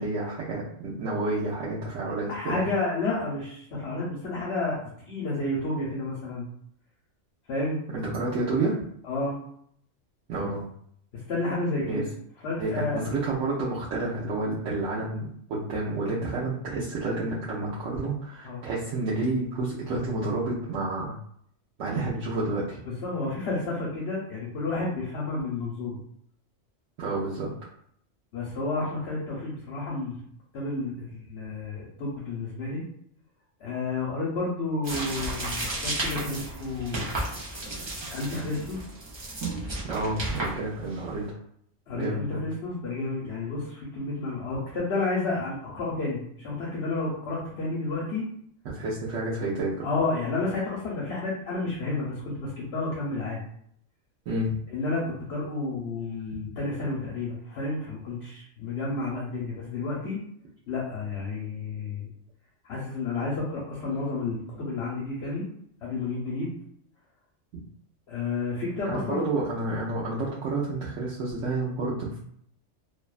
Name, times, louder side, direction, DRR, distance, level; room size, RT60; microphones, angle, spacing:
voice 1, 0.0-2.6 7.9-8.8 10.3-10.7 11.9-12.0 12.6-21.2 21.8-22.8 27.0-27.5 39.8-41.3 41.9-42.4 48.6-49.9 54.3-54.5 67.5-67.6 68.8-72.2, right 2 dB, 80° right, -7 dB, 0.9 m, -30 dB
voice 2, 2.3-4.8 5.1-6.5 7.5-7.8 9.0-9.4 11.3-12.1 12.4-13.1 18.4-18.7 22.9-26.0 28.3-30.2 30.5-32.8 33.6-37.1 38.1-38.8 41.9-48.3 49.8-53.4 54.7-60.2 60.7-62.1 62.6-65.4 65.8-66.5 68.1-69.3, left 3 dB, 65° left, -5 dB, 0.9 m, -31 dB
sound 1, 34.8-41.2, right 2 dB, 35° right, 0.5 m, -33 dB
2.6 x 2.2 x 2.3 m, 0.66 s
omnidirectional pair, 1.3 m